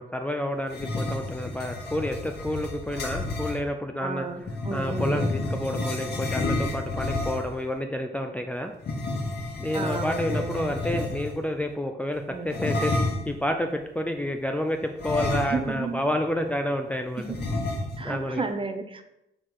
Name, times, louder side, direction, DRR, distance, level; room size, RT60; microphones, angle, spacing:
voice 1, 0.0-4.3 4.7-8.7 9.6-17.4 18.0-18.5, left 1 dB, 5° left, 4 dB, 0.5 m, -29 dB
sound 1, 0.7-3.6 4.4-7.6 8.8-11.4 12.5-13.3 15.0-15.9 16.2-16.3 17.3-18.2, left 2 dB, 55° left, 1.4 m, -30 dB
voice 2, 4.0-5.3 9.7-10.8 12.3-12.7 15.5-16.0 17.2-17.6 18.0-19.0, right 4 dB, 25° right, 8 dB, 0.8 m, -33 dB
6.4 x 4.0 x 4.7 m, 0.86 s
cardioid pair, 90°, 20 cm